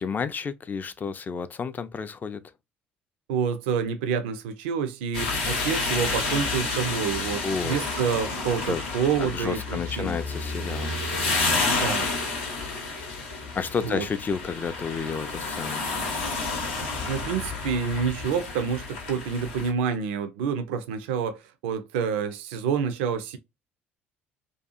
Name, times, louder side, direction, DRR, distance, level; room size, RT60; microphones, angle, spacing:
voice 1, 0.0-2.4 7.4-8.0 8.6-8.8 9.2-10.9 13.6-15.9, left 5 dB, 30° left, 0.3 m, -31 dB
voice 2, 3.3-10.2 11.7-12.1 13.8-14.0 17.1-23.4, right 7 dB, 70° right, 0.4 m, -28 dB
sound 1, 5.1-19.7, left 3 dB, 75° left, 0.7 m, -30 dB
2.6 x 2.3 x 2.3 m
figure-of-eight pair, 55°, 6 cm